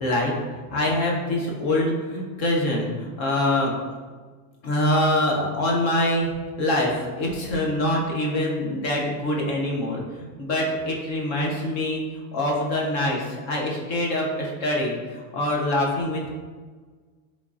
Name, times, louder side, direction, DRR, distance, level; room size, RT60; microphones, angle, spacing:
voice 1, 0.0-3.7 4.6-6.3 6.6-16.3, left 1 dB, 30° left, -2 dB, 0.4 m, -25 dB
3.6 x 3.1 x 2.3 m, 1.5 s
supercardioid pair, 160°, 44 cm